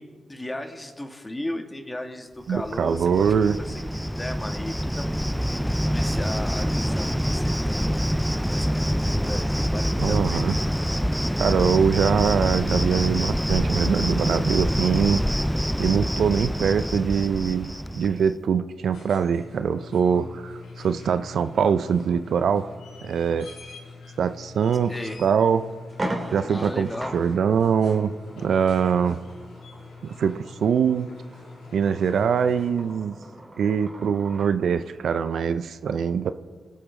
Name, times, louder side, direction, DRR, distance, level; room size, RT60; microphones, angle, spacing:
voice 1, 0.0-3.7 4.2-5.6 5.9-8.0 8.5-10.6 24.9-25.3 26.5-27.3, left 1 dB, 20° left, 4 dB, 2.1 m, -35 dB
Cricket, 2.5-18.3, equal, ahead, 0.3 m, -26 dB
voice 2, 2.5-3.6 10.0-10.6 11.4-15.2 15.8-22.7 23.0-23.5 24.2-24.9 25.2-25.7 26.3-29.2 30.0-31.1 31.7-33.2 33.6-36.3, right 7 dB, 75° right, 12 dB, 0.4 m, -23 dB
sound 1, 18.7-33.1 34.8-34.9, left 4 dB, 85° left, 2.6 m, -44 dB
sound 2, 24.9-25.0 25.5-25.6 25.9-34.5, right 1 dB, 30° right, 2.4 m, -39 dB
22.5 x 8.6 x 3.7 m, 1.5 s
supercardioid pair, 45°, 0 cm